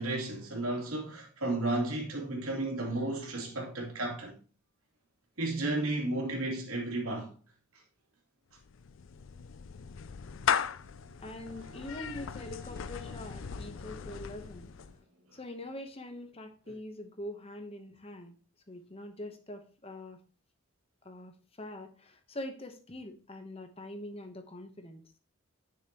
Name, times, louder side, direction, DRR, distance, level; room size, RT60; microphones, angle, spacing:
voice 1, 0.0-4.4 5.4-7.3, right 2 dB, 90° right, 2.9 m, -33 dB
Clapping / Meow, 8.6-15.0, left 7 dB, 65° left, 0.4 m, -37 dB
sound 1, 10.3-15.9, left 2 dB, 55° right, 2.7 m, -58 dB
voice 2, 11.2-14.7 15.3-18.4 18.7-20.2 21.0-25.0, left 1 dB, 25° left, 1.0 m, -44 dB
10.0 x 6.6 x 3.0 m
head